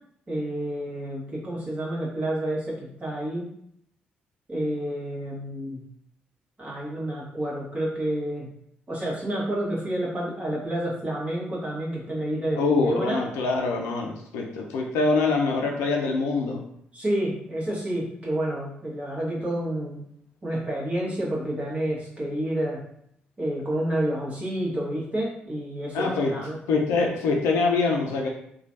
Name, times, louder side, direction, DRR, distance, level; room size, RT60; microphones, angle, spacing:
voice 1, 0.3-3.5 4.5-5.8 6.6-8.5 8.9-13.2 16.9-20.0 20.4-22.8 23.4-26.6, right 1 dB, 25° right, -5 dB, 1.3 m, -29 dB
voice 2, 12.5-16.6 25.9-26.3 26.7-28.3, left 3 dB, 65° left, 1 dB, 0.4 m, -24 dB
3.1 x 2.3 x 2.7 m, 0.69 s
figure-of-eight pair, 40°, 5 cm